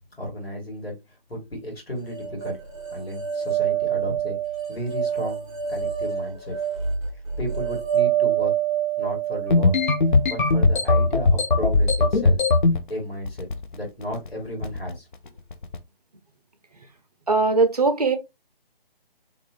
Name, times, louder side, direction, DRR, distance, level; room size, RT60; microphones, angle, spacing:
voice 1, 0.2-0.9 1.3-2.6 2.9-4.4 4.7-6.5 7.4-8.5 9.0-9.7 10.3-12.4 12.9-13.5 13.7-15.1, equal, 85° left, 2.0 m, -33 dB
sound 1, 2.1-11.2, right 9 dB, 10° right, 0.8 m, -27 dB
sound 2, 9.5-12.8 13.2-13.7 14.0-14.3 14.6-14.9 15.5-15.8, left 3 dB, 55° left, 0.5 m, -19 dB
voice 2, 17.3-18.2, right 3 dB, 40° right, 0.5 m, -20 dB
2.9 x 2.5 x 2.9 m
figure-of-eight pair, 150°, 30 cm